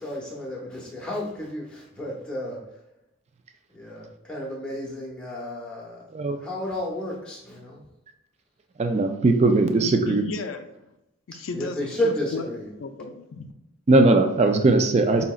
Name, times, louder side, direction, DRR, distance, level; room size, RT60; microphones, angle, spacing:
voice 1, 0.0-2.6 3.7-6.1 6.4-7.8 11.5-12.7, left 1 dB, 5° left, -4 dB, 0.8 m, -32 dB
voice 2, 8.8-10.2 13.9-15.2, right 2 dB, 30° right, 6 dB, 0.3 m, -19 dB
voice 3, 9.8-10.7 11.4-12.5 12.8-13.5, left 4 dB, 70° left, 6 dB, 0.4 m, -34 dB
5.2 x 2.8 x 2.3 m, 0.89 s
head